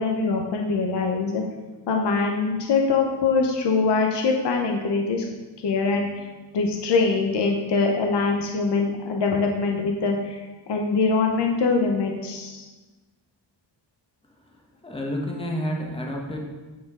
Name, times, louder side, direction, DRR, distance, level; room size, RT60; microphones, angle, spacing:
voice 1, 0.0-1.4 1.9-5.2 5.6-6.3 6.5-10.4 10.7-12.6, left 4 dB, 65° left, 1 dB, 0.8 m, -23 dB
voice 2, 14.8-16.4, equal, 10° left, 0 dB, 1.0 m, -29 dB
9.3 x 4.3 x 3.7 m, 1.2 s
wide cardioid pair, 135°, 44 cm